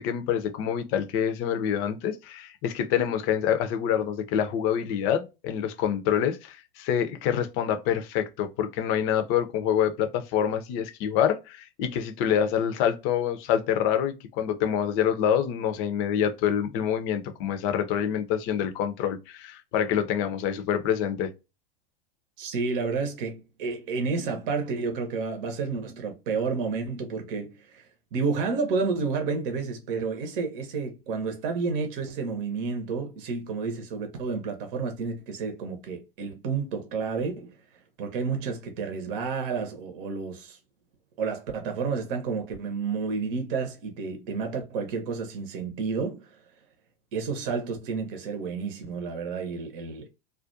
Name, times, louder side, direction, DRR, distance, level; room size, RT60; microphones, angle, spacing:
voice 1, 0.0-21.3, left 9 dB, 45° left, 0.5 m, -26 dB
voice 2, 22.4-27.8 28.1-37.5 38.0-40.6 41.2-46.3 47.1-50.1, right 4 dB, 60° right, 0.8 m, -30 dB
2.4 x 2.2 x 2.5 m
hypercardioid pair, 90°, 30 cm